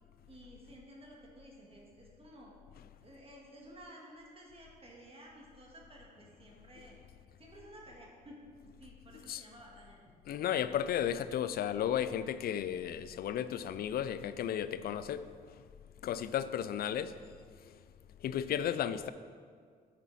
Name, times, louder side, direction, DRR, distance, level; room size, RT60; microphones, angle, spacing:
voice 1, 0.3-2.6 3.0-7.0 7.4-8.4 8.8-10.0, right 1 dB, 35° right, -2 dB, 1.8 m, -54 dB
voice 2, 10.3-15.6 16.0-17.2 18.2-19.1, left 10 dB, 65° left, 14 dB, 0.4 m, -34 dB
9.3 x 5.0 x 4.1 m, 2.1 s
cardioid pair, 80°, 17 cm